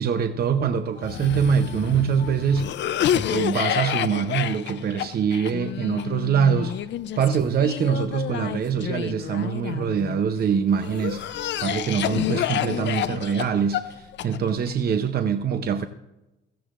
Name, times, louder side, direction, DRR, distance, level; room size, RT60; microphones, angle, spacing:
voice 1, 0.0-2.8 3.1-6.8 7.2-15.9, right 7 dB, 50° right, 0.7 m, -24 dB
Cough, 1.0-10.2 10.8-14.7, left 11 dB, 65° left, 0.5 m, -29 dB
16.5 x 14.0 x 2.5 m
cardioid pair, 90°, 20 cm